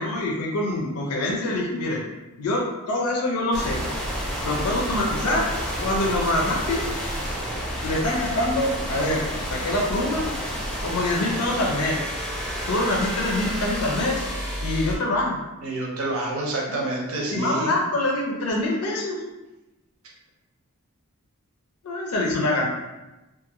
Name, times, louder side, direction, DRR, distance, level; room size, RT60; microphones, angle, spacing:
voice 1, 0.0-2.0 2.4-3.8 4.4-5.5 5.8-6.9 7.8-10.3 10.8-12.0 12.6-14.2 14.6-15.4 16.7-16.9 17.3-19.2 21.8-22.7, left 1 dB, 85° left, -1 dB, 0.5 m, -25 dB
sound 1, 3.5-15.0, equal, 5° left, 0.4 m, -30 dB
voice 2, 15.6-17.7, right 2 dB, 70° right, -2 dB, 0.6 m, -28 dB
2.5 x 2.4 x 2.8 m, 1.0 s
head